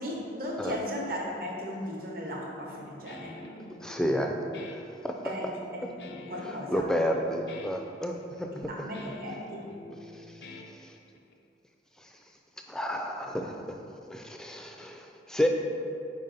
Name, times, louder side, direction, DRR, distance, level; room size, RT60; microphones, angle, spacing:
voice 1, 0.0-3.4 5.2-5.4 5.7-6.9 8.7-9.7, equal, 55° right, -2 dB, 1.0 m, -36 dB
Guitar, 2.7-11.3, left 2 dB, 70° left, 0.5 m, -47 dB
voice 2, 3.8-4.4 4.7-5.2 6.4-8.7 10.2-10.3 10.8-10.9 12.0-12.1 12.7-13.6 14.1-15.5, equal, 5° left, 2 dB, 0.4 m, -31 dB
5.5 x 4.9 x 3.9 m, 2.5 s
head